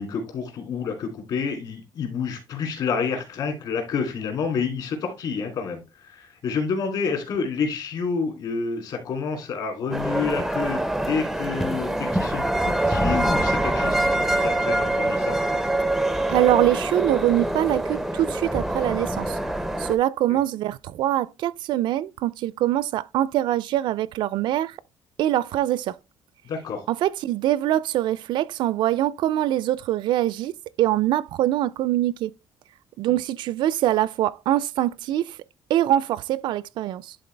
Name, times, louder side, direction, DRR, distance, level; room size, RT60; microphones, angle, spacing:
voice 1, 0.0-15.4 20.3-20.4 26.4-26.9, left 5 dB, 55° left, 2.8 m, -29 dB
sound 1, 9.9-20.0, right 1 dB, ahead, 0.5 m, -24 dB
voice 2, 16.3-19.4 19.8-24.8 25.2-26.0 26.9-30.5 30.8-32.3 33.0-35.4 35.7-37.2, right 13 dB, 65° right, 0.3 m, -23 dB
11.0 x 3.9 x 3.2 m
cardioid pair, 170°, 9 cm